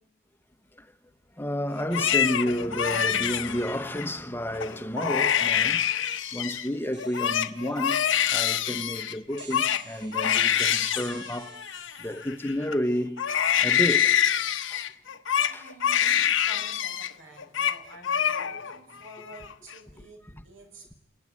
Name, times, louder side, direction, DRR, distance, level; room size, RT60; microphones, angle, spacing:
voice 1, 1.4-5.9 6.3-13.2 13.6-14.9 15.5-15.6, equal, 10° left, 1.0 m, -31 dB
Crying sobbing, 1.8-4.1 4.6-4.7 5.0-6.7 7.0-12.7 13.2-17.1 17.4-17.8 18.0-18.8 19.1-19.7, left 9 dB, 65° left, 1.1 m, -26 dB
sound 1, 6.0-14.0, right 6 dB, 55° right, 2.1 m, -49 dB
voice 2, 15.5-21.0, right 1 dB, 75° right, 6.5 m, -49 dB
29.0 x 19.5 x 9.8 m
head